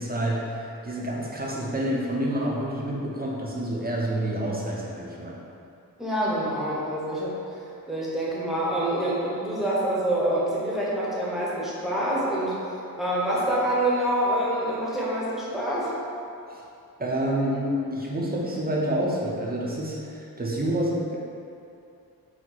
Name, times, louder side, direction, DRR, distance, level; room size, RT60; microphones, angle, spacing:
voice 1, 0.0-5.4 16.5-16.6 17.0-21.2, right 1 dB, 25° right, -4 dB, 0.7 m, -28 dB
voice 2, 6.0-15.9, right 1 dB, ahead, -7 dB, 0.9 m, -26 dB
4.6 x 2.1 x 4.0 m, 2.6 s
wide cardioid pair, 85°, 38 cm